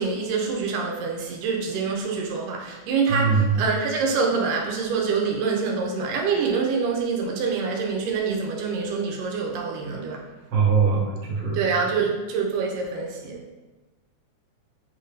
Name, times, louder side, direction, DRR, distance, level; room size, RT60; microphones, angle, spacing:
voice 1, 0.0-10.2 11.5-13.4, right 5 dB, 90° right, 0 dB, 2.5 m, -26 dB
voice 2, 3.1-3.5 10.5-11.6, right 5 dB, 50° right, -5 dB, 2.7 m, -21 dB
7.1 x 3.3 x 3.9 m, 1.2 s
omnidirectional pair, 3.6 m